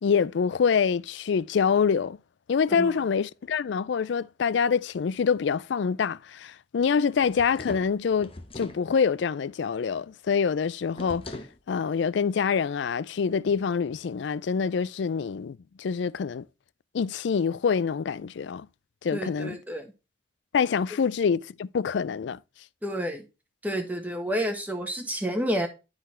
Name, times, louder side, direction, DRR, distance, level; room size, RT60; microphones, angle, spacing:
voice 1, 0.0-2.2 2.5-11.2 11.7-16.4 16.9-18.7 19.0-19.6 20.5-22.4, left 6 dB, 65° left, 0.4 m, -26 dB
sound 1, 7.2-8.8 10.9-11.6, left 1 dB, 30° left, 0.9 m, -40 dB
voice 2, 19.1-19.9 22.8-23.2 23.6-25.7, equal, 10° right, 1.4 m, -30 dB
12.0 x 4.0 x 4.4 m
head